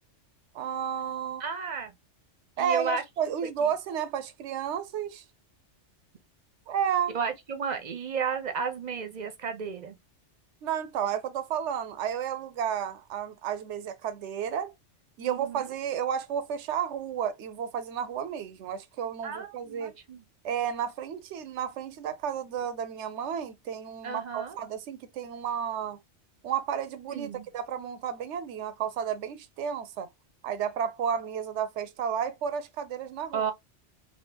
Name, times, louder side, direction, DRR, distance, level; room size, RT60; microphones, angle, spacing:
voice 1, 0.5-1.4 2.6-5.2 6.7-7.2 10.6-14.7 15.2-19.9 20.4-26.0 26.4-27.3 27.5-30.1 30.4-33.5, right 8 dB, 75° right, 0.9 m, -32 dB
voice 2, 1.4-1.9 2.6-3.0 3.6-3.7 7.1-10.0 15.2-15.6 19.2-20.2 24.0-24.6 27.1-27.5 33.3-33.5, right 6 dB, 45° right, 0.7 m, -33 dB
3.4 x 2.7 x 2.8 m
omnidirectional pair, 1.2 m